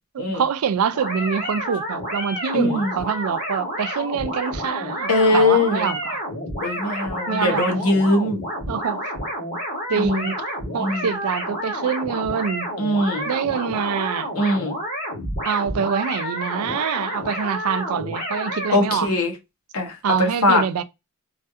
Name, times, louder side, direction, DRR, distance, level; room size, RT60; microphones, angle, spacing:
voice 1, 0.1-6.2 7.3-7.7 8.7-9.0 9.9-10.4 10.7-12.7 13.3-14.3 15.5-19.1 20.0-20.8, right 7 dB, 85° right, 0.4 m, -25 dB
sound 1, 0.9-18.7, equal, 35° left, 1.6 m, -30 dB
voice 2, 2.5-2.9 5.1-5.9 6.6-8.4 10.0-10.3 10.8-11.1 12.8-13.3 14.4-14.8 18.7-19.3 19.7-20.6, left 2 dB, 85° left, 1.0 m, -21 dB
3.2 x 2.4 x 2.6 m
head